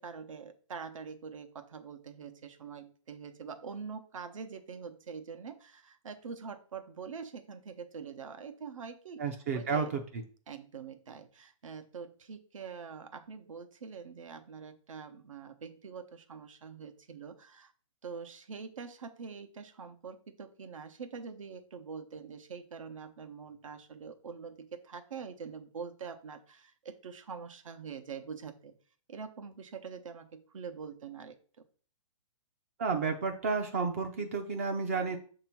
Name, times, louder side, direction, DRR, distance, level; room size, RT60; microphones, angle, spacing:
voice 1, 0.0-9.2 9.5-9.9 10.5-17.7 18.0-28.7 29.1-31.4, right 6 dB, 70° right, 8 dB, 1.0 m, -44 dB
voice 2, 9.2-10.0 32.8-35.2, right 5 dB, 25° right, 5 dB, 0.5 m, -31 dB
7.0 x 3.0 x 5.8 m, 0.43 s
hypercardioid pair, 170°, 17 cm